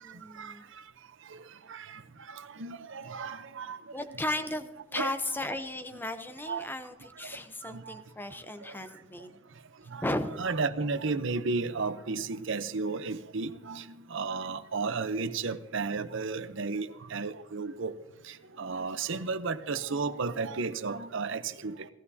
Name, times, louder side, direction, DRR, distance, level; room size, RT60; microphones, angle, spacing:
voice 1, 0.0-0.6 3.9-9.4 10.0-10.4, left 1 dB, 10° left, 9 dB, 0.8 m, -35 dB
voice 2, 1.3-2.0 2.3-3.8 4.9-5.1 6.5-6.7 7.2-7.3 7.6-8.0 9.9-10.0 10.4-17.9 18.2-21.9, right 4 dB, 65° right, 11 dB, 0.8 m, -33 dB
18.5 x 14.5 x 2.8 m, 1.2 s
head